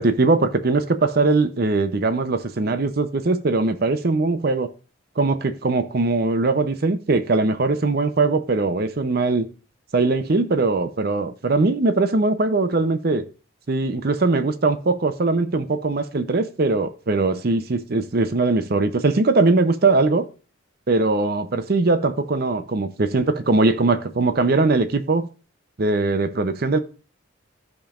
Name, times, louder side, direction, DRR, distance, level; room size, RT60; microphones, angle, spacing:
voice 1, 0.0-4.7 5.2-9.4 9.9-13.2 13.7-20.3 20.9-25.3 25.8-26.8, right 3 dB, 50° right, 11 dB, 0.6 m, -21 dB
14.5 x 5.2 x 2.5 m, 0.36 s
head